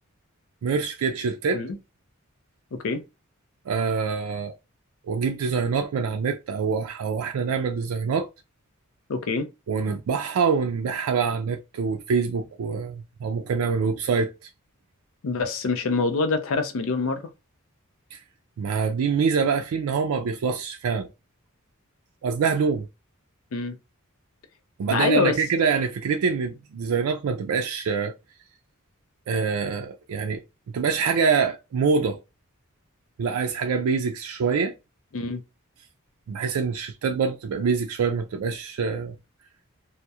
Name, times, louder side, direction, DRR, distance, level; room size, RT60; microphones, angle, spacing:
voice 1, 0.6-1.6 3.7-4.5 5.1-8.3 9.7-14.5 18.1-18.2 18.6-21.1 22.2-22.9 24.8-28.1 29.3-30.4 30.7-32.2 33.2-34.7 36.3-39.2, right 5 dB, 85° right, 0.3 m, -25 dB
voice 2, 2.7-3.0 9.1-9.5 15.2-17.3 23.5-23.8 24.9-25.4 35.1-35.4, left 4 dB, 65° left, 0.5 m, -25 dB
2.3 x 2.0 x 2.7 m
head